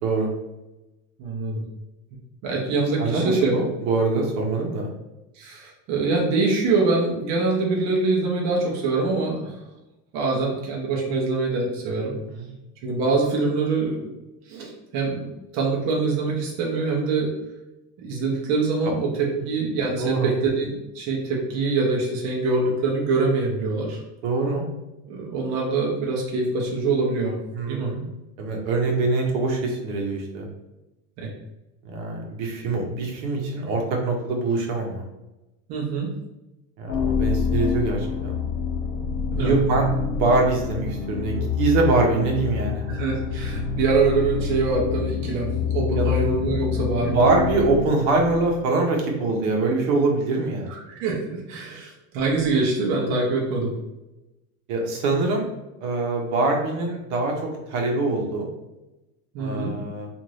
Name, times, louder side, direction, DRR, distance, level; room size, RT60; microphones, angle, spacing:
voice 1, 1.2-1.6 2.4-3.5 5.3-9.5 10.1-12.1 12.8-14.2 14.5-15.2 15.5-17.3 18.0-24.0 25.1-27.4 27.7-27.9 31.2-31.3 35.7-36.1 39.3-39.6 42.9-47.2 50.9-53.7 59.3-59.7, right 3 dB, 45° right, -2 dB, 0.6 m, -24 dB
voice 2, 3.0-4.9 12.3-12.5 18.8-18.9 20.0-20.3 24.2-24.6 27.5-28.0 28.4-30.5 31.8-35.0 36.8-38.4 39.3-42.9 46.0-46.1 46.8-46.9 47.1-50.7 54.7-55.5 55.8-57.3 57.7-58.5 59.4-60.1, right 3 dB, 70° right, 1 dB, 0.9 m, -23 dB
sound 1, 36.9-48.8, left 6 dB, 35° left, 0.5 m, -27 dB
2.6 x 2.5 x 3.1 m, 0.98 s
cardioid pair, 160°, 41 cm